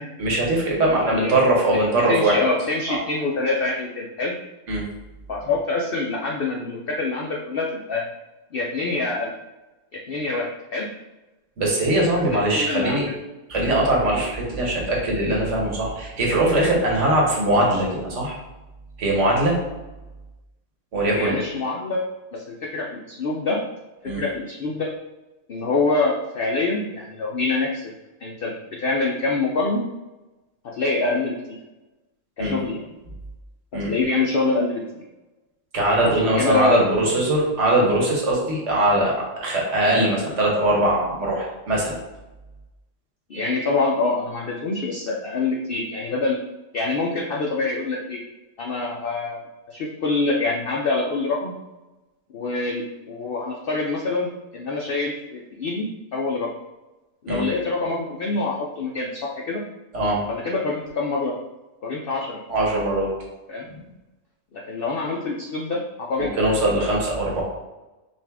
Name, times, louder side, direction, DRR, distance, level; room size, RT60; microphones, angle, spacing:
voice 1, 0.2-2.4 2.9-3.0 4.7-4.8 11.6-13.1 13.5-18.4 19.0-19.6 20.9-21.4 24.1-24.2 32.4-32.6 33.7-33.9 35.7-42.0 57.3-57.5 59.9-60.2 62.5-63.1 63.7-63.8 66.2-67.4, right 1 dB, 55° right, -3 dB, 1.3 m, -21 dB
voice 2, 1.0-1.3 1.9-4.3 5.3-8.0 8.5-9.3 9.9-10.9 12.3-13.0 21.1-22.0 22.3-23.6 24.0-24.9 25.5-27.9 28.2-29.8 30.6-31.6 32.4-32.8 33.9-35.0 36.0-36.8 43.3-46.4 46.7-48.2 48.6-51.5 52.3-56.5 57.2-59.6 60.3-61.3 61.8-62.4 63.5-63.7 64.7-65.8 66.1-66.4, left 3 dB, 75° left, -2 dB, 0.5 m, -25 dB
5.2 x 2.4 x 3.4 m, 1.1 s
omnidirectional pair, 1.6 m